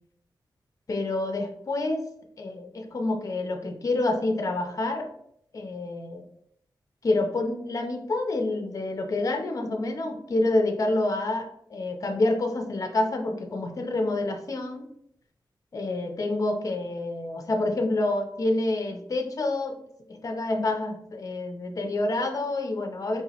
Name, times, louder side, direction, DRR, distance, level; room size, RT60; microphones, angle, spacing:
voice 1, 0.9-2.0 2.4-5.1 5.5-6.2 7.0-14.9 15.7-19.8 20.1-23.2, left 2 dB, 45° left, 5 dB, 0.5 m, -28 dB
4.6 x 2.9 x 2.8 m, 0.72 s
wide cardioid pair, 105°, 8 cm